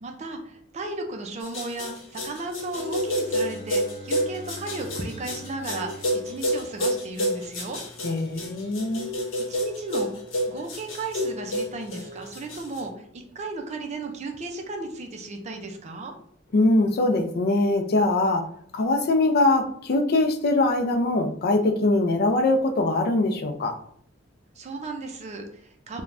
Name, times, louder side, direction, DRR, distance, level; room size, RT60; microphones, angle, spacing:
voice 1, 0.0-7.8 9.5-10.1 10.5-16.1 24.6-26.0, right 2 dB, 35° right, 3 dB, 0.4 m, -35 dB
sound 1, 1.4-12.8, equal, 90° left, 0.8 m, -29 dB
Bowed string instrument, 2.5-7.4, right 1 dB, 5° right, 0.9 m, -45 dB
voice 2, 8.0-9.1 16.5-18.4 18.7-23.7, left 2 dB, 55° left, 6 dB, 0.4 m, -22 dB
3.3 x 2.1 x 2.4 m, 0.64 s
head